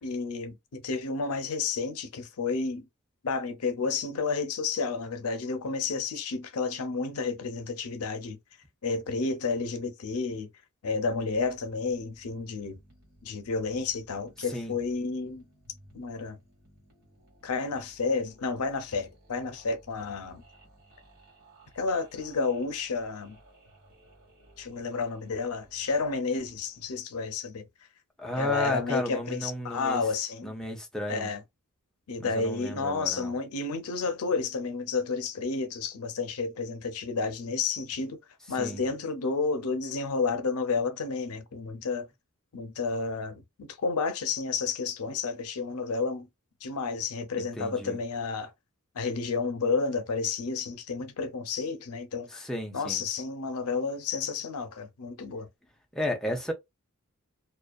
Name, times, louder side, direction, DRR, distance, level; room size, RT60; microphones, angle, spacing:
voice 1, 0.0-2.9 3.2-8.4 8.8-10.5 10.8-12.8 13.2-15.4 15.9-16.4 17.4-20.4 21.7-23.4 24.6-27.7 28.4-30.5 31.1-31.4 32.1-38.2 38.5-42.1 42.5-46.3 46.6-48.5 48.9-52.5 52.7-55.5, left 4 dB, 80° left, 0.6 m, -31 dB
sound 1, 11.1-27.0, right 1 dB, 45° right, 1.3 m, -58 dB
voice 2, 28.2-30.0 30.4-31.3 32.2-33.3 38.6-38.8 47.4-48.0 52.3-53.0 55.9-56.5, left 1 dB, ahead, 0.5 m, -33 dB
2.4 x 2.2 x 2.3 m
head